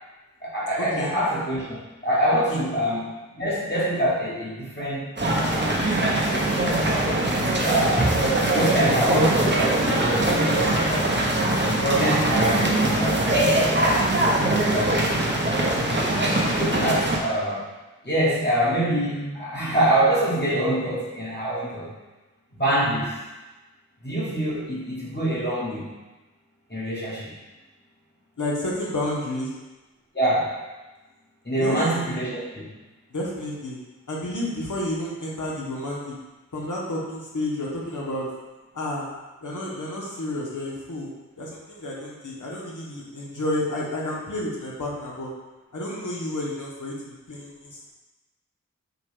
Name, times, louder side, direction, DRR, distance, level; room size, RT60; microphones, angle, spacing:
voice 1, 0.4-1.8 2.0-3.1 3.3-5.8 6.1-7.1 7.5-11.2 11.8-13.6 14.7-14.9 15.7-16.1 16.5-17.6 18.0-21.9 22.6-23.1 24.0-25.8 26.7-27.3 30.1-30.5 31.4-32.7, right 1 dB, 35° left, -8 dB, 1.3 m, -25 dB
sound 1, 5.2-17.2, right 1 dB, 35° right, 0.7 m, -22 dB
voice 2, 14.3-14.7 28.4-29.5 31.6-31.8 33.1-33.8 34.1-36.2 36.5-38.3 38.7-39.1 39.4-45.3 45.7-47.9, left 1 dB, 75° left, -4 dB, 1.0 m, -31 dB
5.8 x 2.3 x 3.5 m, 1.1 s
wide cardioid pair, 40°, 31 cm